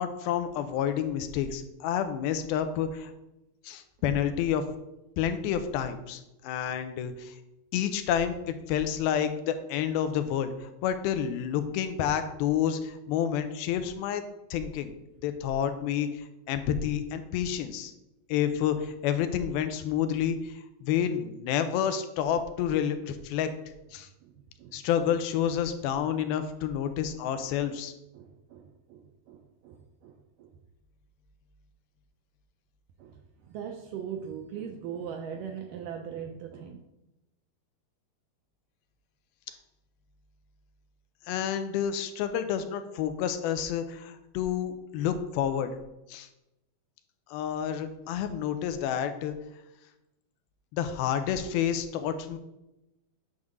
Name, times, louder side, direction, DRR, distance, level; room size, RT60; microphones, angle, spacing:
voice 1, 0.0-3.1 3.6-4.6 5.2-7.3 7.7-14.2 14.5-14.9 15.2-17.9 18.3-23.5 23.9-24.1 24.7-27.9 41.3-45.7 46.1-46.3 47.3-49.3 50.7-52.4, left 9 dB, 85° left, 9 dB, 2.5 m, -29 dB
voice 2, 28.1-30.5 33.0-36.8, right 8 dB, 85° right, 4 dB, 1.9 m, -40 dB
9.5 x 3.6 x 6.4 m, 0.92 s
omnidirectional pair, 4.4 m